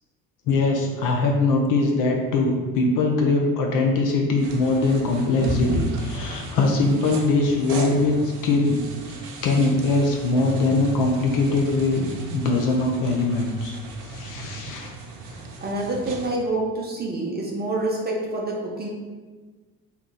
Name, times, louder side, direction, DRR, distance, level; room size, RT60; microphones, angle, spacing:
voice 1, 0.5-8.8 9.4-12.1 12.3-13.8 14.0-14.9, left 3 dB, 45° left, 1 dB, 0.5 m, -22 dB
sound 1, 4.4-16.3, right 1 dB, 75° right, 0.6 m, -33 dB
voice 2, 15.6-18.9, right 2 dB, 20° right, -2 dB, 0.6 m, -27 dB
2.8 x 2.3 x 3.7 m, 1.4 s
figure-of-eight pair, 55°, 48 cm